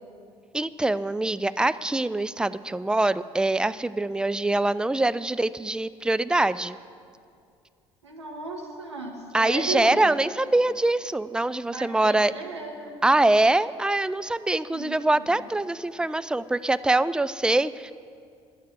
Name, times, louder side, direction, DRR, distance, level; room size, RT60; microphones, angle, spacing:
voice 1, 0.5-6.8 9.3-12.3 13.0-17.9, right 2 dB, 5° right, 16 dB, 0.4 m, -24 dB
voice 2, 8.0-10.1 11.7-13.0 14.7-15.5, right 3 dB, 85° right, 1 dB, 1.1 m, -35 dB
11.0 x 9.2 x 7.6 m, 2.3 s
figure-of-eight pair, 50°, 14 cm